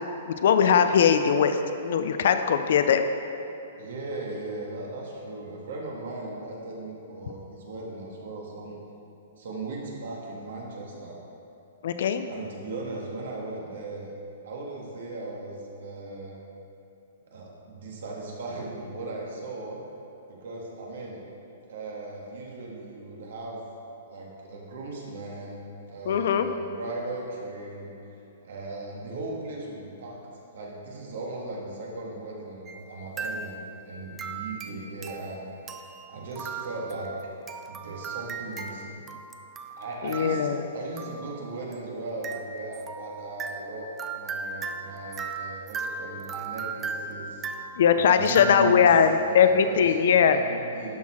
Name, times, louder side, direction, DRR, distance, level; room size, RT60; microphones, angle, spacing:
voice 1, 0.0-1.6 1.8-3.0 11.8-12.2 26.1-26.5 40.0-40.6 47.8-50.4, left 7 dB, 65° left, 9 dB, 0.5 m, -20 dB
voice 2, 3.8-8.8 9.4-11.2 12.3-14.1 14.4-16.4 17.3-19.8 20.3-21.2 21.7-23.6 24.1-25.6 25.9-27.9 28.4-30.2 30.5-37.1 37.7-39.0 39.8-43.9 44.2-47.4 47.9-48.8 49.2-50.0 50.3-51.0, right 2 dB, 70° right, -2 dB, 1.8 m, -37 dB
sound 1, 32.7-32.9 33.2-33.8 34.2-49.1, right 5 dB, 15° right, 0.4 m, -38 dB
11.5 x 4.6 x 4.4 m, 2.8 s
hypercardioid pair, 155°, 0 cm